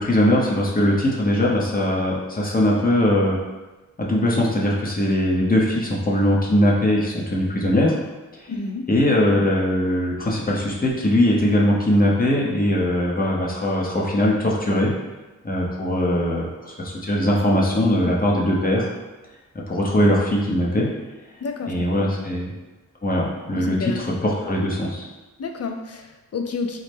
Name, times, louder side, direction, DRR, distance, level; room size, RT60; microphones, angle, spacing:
voice 1, 0.0-3.4 4.0-7.9 8.4-8.5 8.9-14.9 15.4-18.9 19.7-20.9 21.7-22.5 23.0-23.9 24.2-25.1, left 1 dB, 25° left, -3 dB, 0.9 m, -20 dB
voice 2, 8.5-8.8 21.4-22.3 23.5-24.2 25.4-26.8, left 4 dB, 50° left, 4 dB, 0.5 m, -30 dB
3.9 x 2.1 x 3.4 m, 1.2 s
cardioid pair, 55°, 33 cm